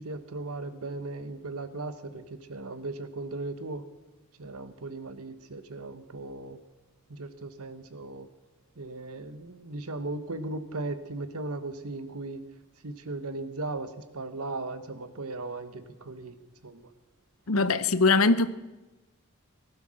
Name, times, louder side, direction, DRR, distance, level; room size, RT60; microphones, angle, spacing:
voice 1, 0.0-2.2 2.5-3.8 4.4-6.6 7.1-8.3 8.8-12.4 12.8-16.4 16.6-16.9 17.8-18.0, right 2 dB, 85° right, 11 dB, 1.2 m, -37 dB
voice 2, 17.5-18.5, left 3 dB, 75° left, 14 dB, 0.8 m, -22 dB
18.5 x 11.5 x 6.4 m, 1.1 s
head